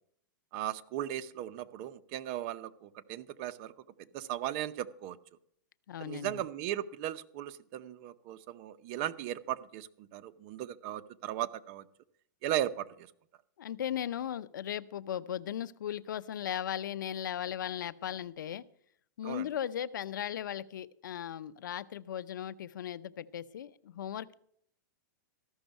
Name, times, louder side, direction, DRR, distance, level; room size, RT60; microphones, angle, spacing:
voice 1, 0.5-3.7 4.1-5.2 6.0-11.9 12.4-13.1 19.2-19.5, right 12 dB, 40° right, 0.7 m, -37 dB
voice 2, 5.9-6.4 13.6-18.6 19.2-24.3, left 10 dB, 85° left, 0.6 m, -37 dB
13.5 x 6.2 x 7.9 m
hypercardioid pair, 145°, 10 cm